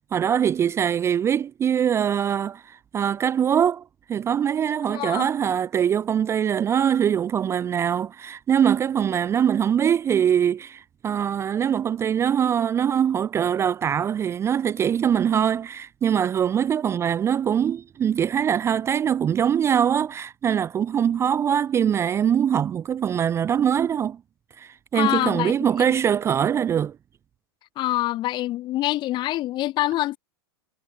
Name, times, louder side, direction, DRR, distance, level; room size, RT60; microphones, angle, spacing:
voice 1, 0.1-3.8 4.1-24.2 24.6-27.0, right 8 dB, 20° right, 0.4 m, -23 dB
voice 2, 4.9-5.3 24.9-25.5 27.8-30.2, left 15 dB, 35° left, 1.6 m, -25 dB
hypercardioid pair, 105°, 13 cm